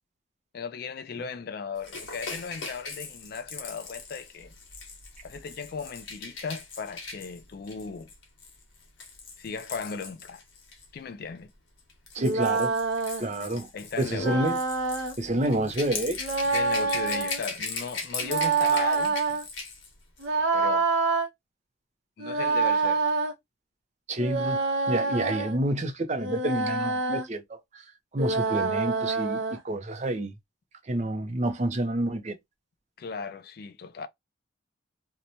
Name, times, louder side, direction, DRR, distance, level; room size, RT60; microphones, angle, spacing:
voice 1, 0.5-4.5 5.2-8.1 9.4-10.4 10.9-11.5 13.7-14.5 16.4-19.4 20.5-20.9 22.2-23.1 33.0-34.1, left 5 dB, 50° left, 0.3 m, -36 dB
Rattle / Rattle (instrument), 1.8-10.9 11.8-19.9 20.2-20.3, left 4 dB, 75° left, 0.9 m, -39 dB
voice 2, 12.1-12.7 13.2-13.7 14.0-14.6 15.2-16.5 24.1-24.6 24.9-27.8 28.1-30.3 30.9-32.4, right 1 dB, 35° right, 0.5 m, -29 dB
sound 1, 12.2-13.3 14.2-15.1 16.2-17.4 18.2-19.4 20.2-21.3 22.2-23.3 24.2-25.6 26.2-27.3 28.2-29.6, right 4 dB, 80° right, 0.6 m, -26 dB
2.6 x 2.2 x 2.9 m
head